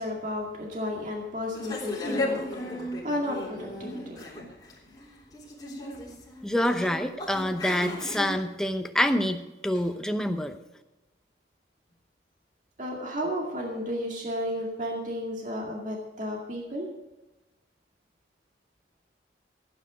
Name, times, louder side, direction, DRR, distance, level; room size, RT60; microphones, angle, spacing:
voice 1, 0.0-4.4 12.8-16.9, left 1 dB, 45° right, 0 dB, 2.1 m, -33 dB
sound 1, 1.5-8.3, left 1 dB, 20° left, 3.5 m, -35 dB
voice 2, 6.4-10.6, left 1 dB, 5° left, 6 dB, 0.8 m, -27 dB
16.0 x 9.4 x 5.0 m, 1.0 s
head